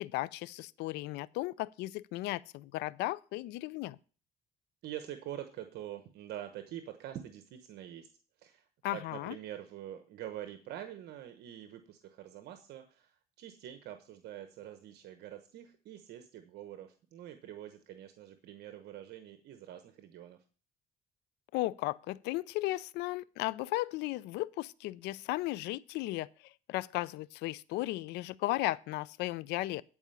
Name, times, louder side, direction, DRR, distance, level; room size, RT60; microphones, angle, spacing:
voice 1, 0.0-4.0 8.8-9.3 21.5-29.8, left 18 dB, 90° left, 0.5 m, -35 dB
voice 2, 4.8-8.1 8.4-20.4, right 11 dB, 75° right, 1.1 m, -45 dB
11.0 x 5.0 x 6.9 m
cardioid pair, 110°, 17 cm